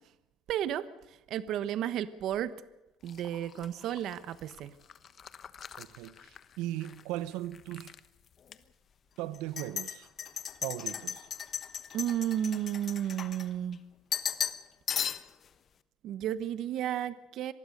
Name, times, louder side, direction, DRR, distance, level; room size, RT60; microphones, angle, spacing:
voice 1, 0.5-2.5 3.0-4.7 11.9-13.8 16.0-17.5, right 11 dB, 50° right, 1.1 m, -33 dB
sound 1, 3.1-7.0 7.3-8.0 8.5-8.6 9.3-13.8 14.1-14.6 14.9-15.5, left 8 dB, 35° left, 1.1 m, -37 dB
voice 2, 5.8-7.9 9.2-10.1 10.6-11.3, right 14 dB, 85° right, 1.1 m, -38 dB
26.0 x 20.0 x 6.7 m
cardioid pair, 155°, 0 cm